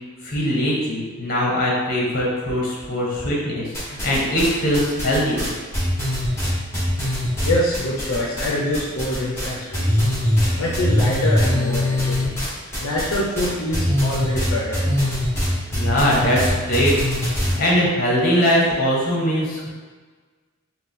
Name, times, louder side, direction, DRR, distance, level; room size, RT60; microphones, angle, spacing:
voice 1, 0.2-5.5 15.7-16.9 17.4-19.7, equal, 45° left, -4 dB, 1.0 m, -21 dB
sound 1, 3.7-4.5 4.7-8.5 8.7-9.5 9.7-17.5, left 1 dB, 15° left, 1.4 m, -22 dB
voice 2, 7.4-10.0 10.6-12.3 12.8-14.8, left 1 dB, 80° left, -4 dB, 0.6 m, -25 dB
4.2 x 2.3 x 3.6 m, 1.4 s
head